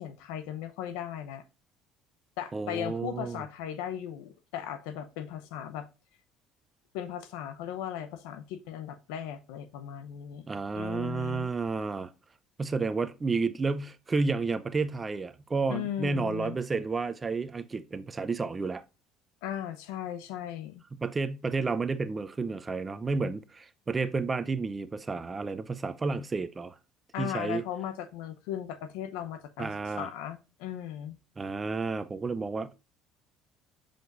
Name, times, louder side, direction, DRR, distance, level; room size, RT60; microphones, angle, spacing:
voice 1, 0.0-1.4 2.4-5.9 6.9-10.5 10.7-11.5 15.7-16.6 19.4-20.8 27.1-29.7 30.0-31.2, left 10 dB, 85° left, 0.8 m, -37 dB
voice 2, 2.5-3.4 10.5-12.1 12.6-18.8 21.0-26.7 27.2-27.6 29.6-30.1 31.4-32.7, right 4 dB, 25° right, 0.6 m, -31 dB
7.7 x 5.1 x 2.6 m
supercardioid pair, 85°, 0 cm